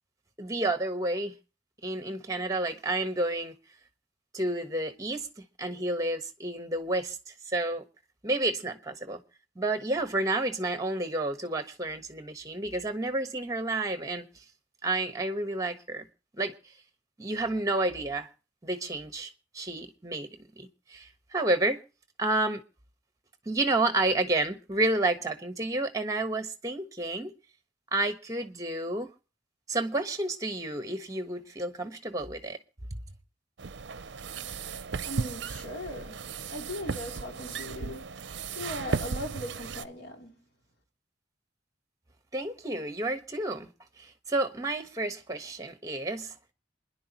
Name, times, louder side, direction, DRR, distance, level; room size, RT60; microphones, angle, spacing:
voice 1, 0.4-1.3 1.8-3.5 4.3-7.8 8.2-9.2 9.5-14.3 14.8-16.1 16.4-16.5 17.2-18.3 18.6-20.3 20.6-21.8 22.2-22.6 23.4-27.3 27.9-29.1 29.7-32.6 32.9-33.0 42.3-43.7 44.0-46.3, right 2 dB, 20° right, 1.2 m, -30 dB
sound 1, 33.6-39.8, right 5 dB, 65° right, 0.6 m, -35 dB
voice 2, 35.0-36.2 36.5-38.0 38.5-40.3, left 1 dB, 60° left, 3.2 m, -39 dB
27.5 x 10.5 x 3.0 m
head